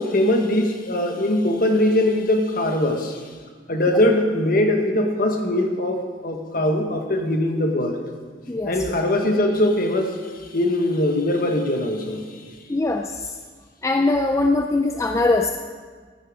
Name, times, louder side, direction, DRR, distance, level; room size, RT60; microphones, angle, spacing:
voice 1, 0.0-3.2 3.7-8.0 8.6-10.2 10.5-12.3, left 1 dB, 50° left, 4 dB, 1.5 m, -21 dB
voice 2, 12.7-13.3 13.8-15.5, left 2 dB, 15° left, 4 dB, 0.4 m, -21 dB
15.0 x 11.0 x 5.0 m, 1.5 s
head